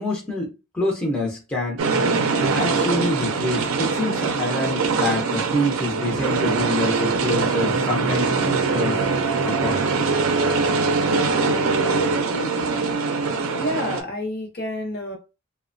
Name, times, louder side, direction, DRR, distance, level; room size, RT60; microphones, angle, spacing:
voice 1, 0.0-1.8 2.5-9.0 9.4-9.8, left 1 dB, 5° left, 0.5 m, -26 dB
sound 1, 1.8-14.0, right 4 dB, 70° right, 0.5 m, -22 dB
voice 2, 13.6-15.2, left 1 dB, 45° left, 0.8 m, -28 dB
2.8 x 2.1 x 2.5 m
head